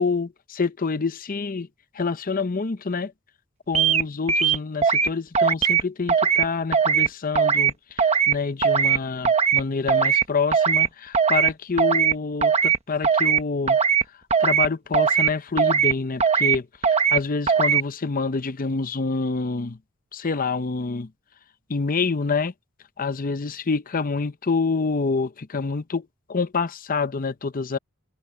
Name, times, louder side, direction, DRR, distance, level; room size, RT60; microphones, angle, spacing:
voice 1, 0.0-1.7 2.0-3.1 3.7-7.7 8.3-13.8 14.4-16.7 17.1-19.8 20.1-21.1 21.7-22.5 23.0-27.8, left 4 dB, 40° left, 0.7 m, -27 dB
sound 1, 3.7-4.0 4.3-5.1 5.3-5.8 6.1-6.4 6.7-7.1 7.3-7.7 8.0-8.3 8.6-9.0 9.2-9.6 9.9-10.2 10.5-10.9 11.1-11.5 11.8-12.1 12.4-12.8 13.0-13.4 13.7-14.0 14.3-14.7 14.9-15.3 15.6-15.9 16.2-16.6 16.8-17.2 17.5-17.8, right 7 dB, 30° right, 1.0 m, -19 dB
head